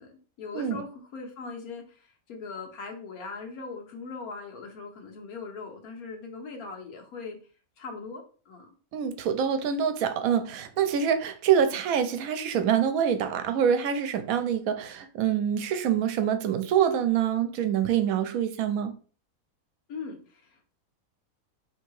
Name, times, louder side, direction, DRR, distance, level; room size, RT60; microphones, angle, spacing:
voice 1, 0.0-7.4 7.8-8.7 19.9-20.7, left 4 dB, 85° left, 1.4 m, -40 dB
voice 2, 8.9-18.9, right 8 dB, 75° right, 1.0 m, -25 dB
3.2 x 2.8 x 4.6 m
omnidirectional pair, 1.5 m